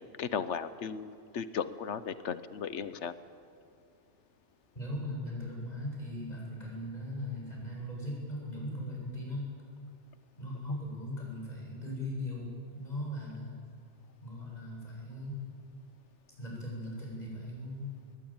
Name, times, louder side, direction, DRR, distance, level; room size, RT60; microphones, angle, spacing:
voice 1, 0.2-3.1, left 7 dB, 85° left, 13 dB, 1.2 m, -36 dB
voice 2, 4.7-9.5 10.4-13.6 14.2-15.4 16.4-17.9, left 1 dB, 35° left, -3 dB, 7.9 m, -39 dB
21.5 x 20.0 x 8.9 m, 2.4 s
omnidirectional pair, 1.2 m